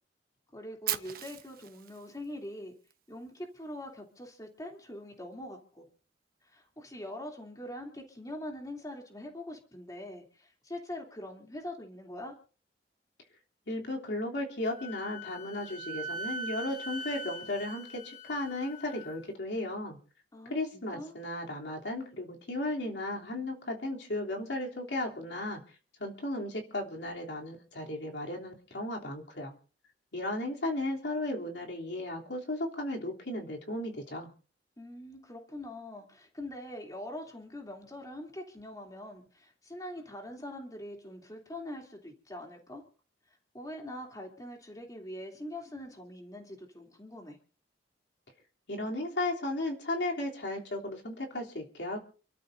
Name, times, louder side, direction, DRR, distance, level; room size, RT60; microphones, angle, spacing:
voice 1, 0.5-2.7 3.1-5.9 6.4-12.3 20.3-21.2 34.8-42.8 43.5-47.4, left 1 dB, 20° left, 1 dB, 3.0 m, -43 dB
Fire, 0.9-2.9, right 12 dB, 55° right, 1.2 m, -38 dB
voice 2, 13.7-20.0 20.5-25.6 26.0-29.5 30.1-34.3 48.7-52.0, left 1 dB, 80° left, 0 dB, 3.2 m, -35 dB
Wind instrument woodwind instrument, 14.7-19.2, right 1 dB, 55° left, 2.8 m, -41 dB
29.0 x 13.0 x 2.7 m, 0.40 s
head